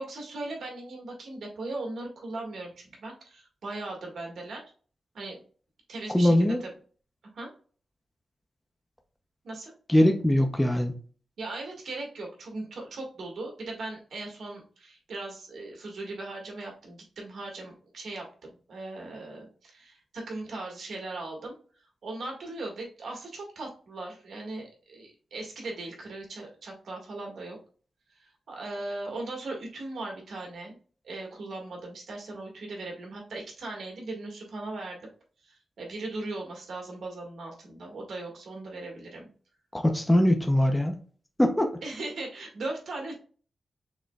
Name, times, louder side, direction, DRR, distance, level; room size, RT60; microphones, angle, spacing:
voice 1, 0.0-4.6 5.1-5.4 5.9-6.7 7.3-7.5 9.4-9.7 11.4-18.3 18.7-27.6 28.1-30.7 31.0-35.1 35.4-39.3 41.8-43.2, right 2 dB, 75° right, 0 dB, 1.6 m, -38 dB
voice 2, 6.1-6.6 9.9-10.9 39.7-40.9 41.4-41.7, left 1 dB, 5° left, 4 dB, 0.6 m, -22 dB
6.2 x 3.1 x 2.3 m, 0.41 s
wide cardioid pair, 125°, 0 cm